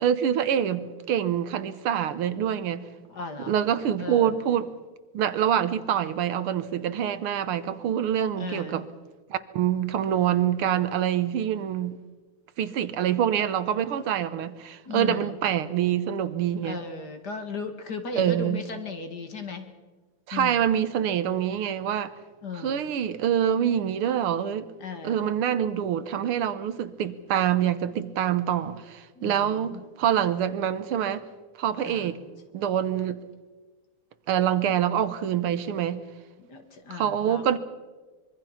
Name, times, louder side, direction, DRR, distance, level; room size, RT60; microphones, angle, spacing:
voice 1, 0.0-2.8 3.5-4.7 5.1-8.8 9.3-12.0 12.6-16.8 18.2-18.6 20.3-22.1 22.6-24.7 25.0-31.2 31.6-32.2 32.5-33.2 34.3-36.0 36.9-37.6, right 9 dB, 75° right, 1.9 m, -26 dB
voice 2, 3.1-3.5 4.0-4.3 8.4-8.9 14.8-15.3 16.6-19.7 20.3-20.7 22.4-22.8 24.8-25.3 29.2-29.8 31.8-32.1 36.4-37.5, left 5 dB, 50° left, 2.4 m, -36 dB
25.0 x 23.5 x 5.8 m
omnidirectional pair, 2.4 m